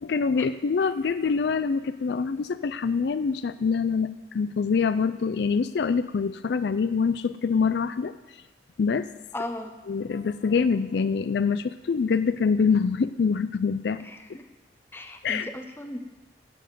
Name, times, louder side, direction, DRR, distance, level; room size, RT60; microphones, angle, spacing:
voice 1, 0.0-8.2 8.8-9.1 9.9-14.0 14.3-14.4 15.2-15.5, left 5 dB, 65° left, 13 dB, 0.4 m, -25 dB
voice 2, 9.3-9.7 14.0-14.4 14.9-16.0, left 1 dB, 10° left, 6 dB, 0.8 m, -36 dB
12.0 x 7.9 x 7.5 m, 1.2 s
head